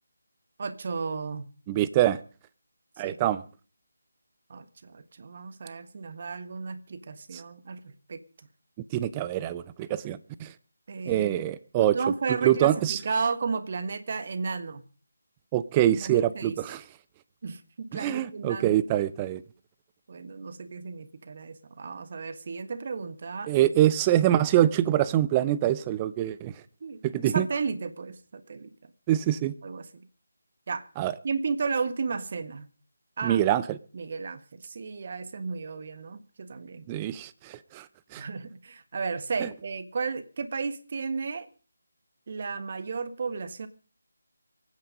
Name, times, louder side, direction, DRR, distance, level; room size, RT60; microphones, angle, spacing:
voice 1, 0.6-1.5 3.0-3.2 4.5-8.2 10.9-11.4 11.8-14.8 15.9-16.6 17.4-19.0 20.1-23.8 26.8-28.7 29.6-29.9 30.7-30.9 31.2-32.7 33.2-33.4 33.9-36.9 38.2-41.5 42.3-43.7, right 4 dB, 40° right, 1.4 m, -33 dB
voice 2, 1.7-2.2 3.0-3.4 8.9-10.5 11.1-12.0 12.4-13.0 15.5-16.8 17.9-19.4 23.5-26.5 27.0-27.5 29.1-29.5 31.0-31.1 33.2-33.8 36.9-37.8 38.1-38.2 39.4-39.5, right 12 dB, 15° right, 0.7 m, -24 dB
24.0 x 9.5 x 5.3 m
figure-of-eight pair, 160°, 0 cm